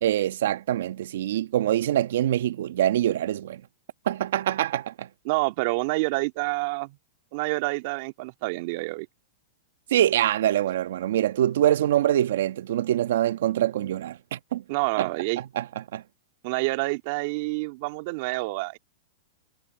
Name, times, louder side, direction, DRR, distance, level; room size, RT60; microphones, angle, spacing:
voice 1, 0.0-3.6 4.1-5.1 9.9-14.6 15.0-15.1 15.5-15.7 15.9-16.0, right 12 dB, 70° right, 1.2 m, -24 dB
voice 2, 5.3-7.0 7.3-9.1 14.7-15.4 16.4-18.8, right 24 dB, 55° right, 2.1 m, -28 dB
hypercardioid pair, 130°, 0 cm